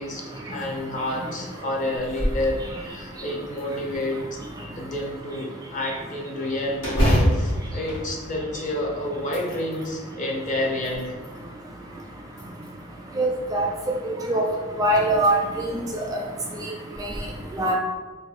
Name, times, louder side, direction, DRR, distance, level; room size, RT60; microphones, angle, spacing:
voice 1, 0.0-4.4 4.7-11.2, left 1 dB, 35° left, 0 dB, 0.6 m, -29 dB
sound 1, 2.0-2.5 2.9-3.0 3.6-4.4 6.8-8.8 9.2-9.9 10.6-11.4 12.3-13.0 14.4-14.5 15.1-15.3 15.8-15.9 16.9-17.2, equal, 80° left, 1.3 m, -26 dB
voice 2, 13.2-13.7 14.0-14.4 14.8-15.7 17.6-17.8, right 1 dB, 15° right, 0 dB, 0.3 m, -22 dB
2.5 x 2.5 x 4.1 m, 1.3 s
head